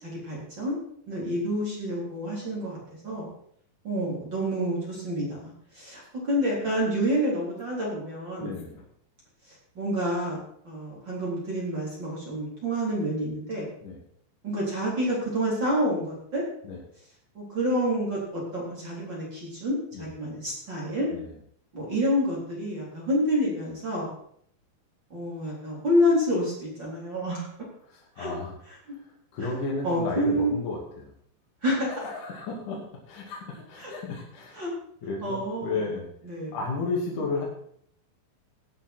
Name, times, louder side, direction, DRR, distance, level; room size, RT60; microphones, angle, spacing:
voice 1, 0.0-0.8 1.1-2.8 3.0-3.2 3.8-5.4 5.7-8.6 9.8-10.4 10.6-13.6 14.4-16.5 17.3-21.1 21.7-24.1 25.1-27.5 28.2-28.3 29.4-30.5 31.6-31.9 33.8-33.9 34.6-34.7 35.2-35.8 36.2-36.6, equal, 30° right, -4 dB, 4.3 m, -28 dB
voice 2, 8.4-8.9 13.8-14.0 16.6-16.8 19.9-20.1 21.1-21.3 27.9-28.5 29.3-31.1 31.9-34.6 35.0-36.1 36.5-37.5, left 3 dB, 60° left, -3 dB, 3.6 m, -33 dB
18.5 x 9.0 x 4.5 m, 0.64 s
omnidirectional pair, 4.3 m